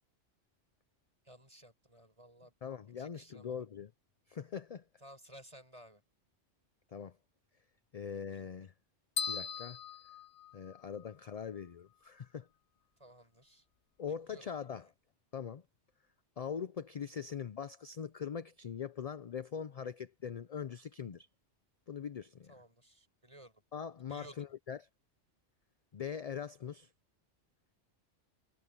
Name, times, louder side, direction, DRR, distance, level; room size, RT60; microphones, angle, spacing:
voice 1, 1.2-2.5 3.0-3.6 5.0-6.0 13.0-13.7 14.3-14.4 14.7-14.9 22.5-23.6 24.1-24.4, right 1 dB, 25° right, 7.0 m, -56 dB
voice 2, 2.6-3.9 4.3-4.8 6.9-7.2 7.9-8.7 9.3-9.8 10.5-12.5 14.0-14.9 15.3-15.6 16.4-21.3 21.9-22.5 23.7-24.9 25.9-26.9, left 7 dB, 45° left, 0.5 m, -42 dB
sound 1, 9.2-11.1, left 6 dB, 70° left, 1.1 m, -39 dB
omnidirectional pair, 1.2 m